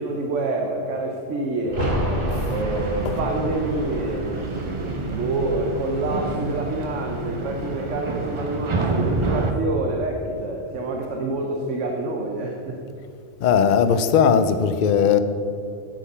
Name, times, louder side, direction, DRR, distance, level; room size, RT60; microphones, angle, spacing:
voice 1, 0.0-2.0 2.5-12.8, right 2 dB, 80° right, 1.2 m, -27 dB
sound 1, 1.6-7.2 7.5-7.6, equal, 45° right, 2.2 m, -30 dB
sound 2, 2.3-9.5, right 2 dB, 30° right, 0.7 m, -28 dB
voice 2, 13.4-15.2, left 7 dB, 55° left, 0.5 m, -18 dB
8.4 x 7.9 x 5.4 m
omnidirectional pair, 1.2 m